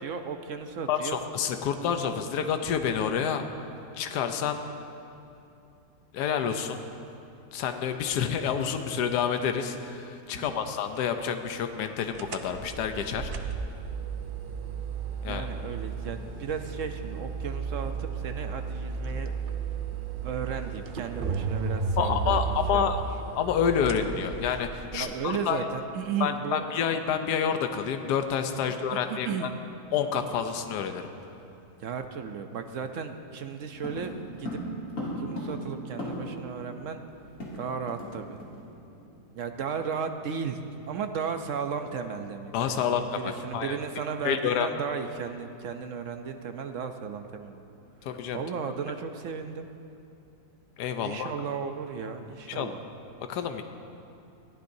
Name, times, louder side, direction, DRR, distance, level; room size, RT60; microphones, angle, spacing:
voice 1, 0.0-1.2 10.4-10.6 15.3-19.3 20.2-23.0 24.9-26.9 28.7-29.5 31.8-34.6 35.0-37.0 37.6-38.4 39.4-47.6 48.3-49.7 51.0-52.8, right 6 dB, 60° right, 7 dB, 0.9 m, -35 dB
voice 2, 0.9-3.5 3.9-4.6 6.1-6.8 7.5-13.3 15.2-15.5 22.0-23.0 23.4-25.6 26.2-29.5 29.9-31.1 42.5-43.8 44.2-44.7 48.0-48.4 50.8-51.3 52.5-52.7 53.2-53.6, left 7 dB, 75° left, 7 dB, 1.3 m, -28 dB
sound 1, 12.1-25.0, right 5 dB, 80° right, 0.4 m, -34 dB
sound 2, 33.8-36.5 36.8-36.9 37.1-38.1 38.4-38.6 39.0-39.2, equal, 50° left, 2.9 m, -36 dB
21.5 x 14.5 x 2.7 m, 2.7 s
omnidirectional pair, 1.8 m